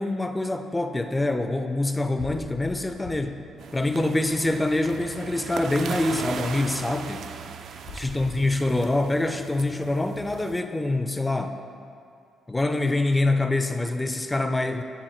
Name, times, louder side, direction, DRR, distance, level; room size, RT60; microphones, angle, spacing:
voice 1, 0.0-3.4 3.7-7.4 7.9-11.6 12.5-14.8, left 2 dB, 15° left, 8 dB, 0.4 m, -25 dB
sound 1, 1.8-1.9 2.2-3.5 3.8-4.9 7.7-9.3, left 4 dB, 90° left, 0.5 m, -42 dB
sound 2, 3.6-10.6, right 6 dB, 65° right, 0.3 m, -37 dB
10.0 x 3.4 x 4.3 m, 2.4 s
cardioid pair, 90°, 0 cm